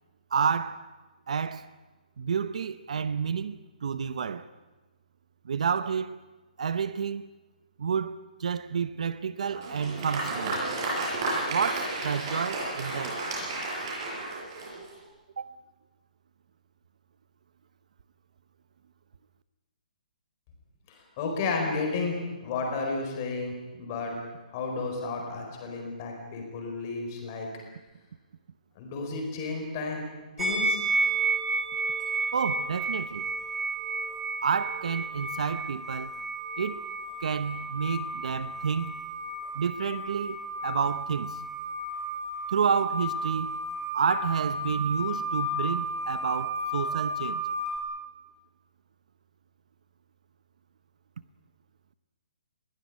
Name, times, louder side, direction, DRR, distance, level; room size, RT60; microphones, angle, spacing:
voice 1, 0.3-0.9 1.3-1.7 2.2-4.5 5.4-6.1 6.6-7.3 7.8-10.6 11.5-13.2 15.4-15.5 32.3-33.2 34.4-36.1 36.6-36.8 37.2-39.0 39.5-41.4 42.5-43.6 43.9-47.4, right 6 dB, 55° right, 0.8 m, -30 dB
Applause, 9.5-15.1, right 2 dB, 30° right, 7.2 m, -32 dB
voice 2, 20.9-24.2 24.5-27.5 28.8-30.0 30.4-30.8, left 3 dB, 20° left, 4.5 m, -32 dB
sound 1, 30.4-47.8, right 2 dB, 5° right, 2.2 m, -32 dB
21.5 x 16.5 x 9.6 m
hypercardioid pair, 175°, 5 cm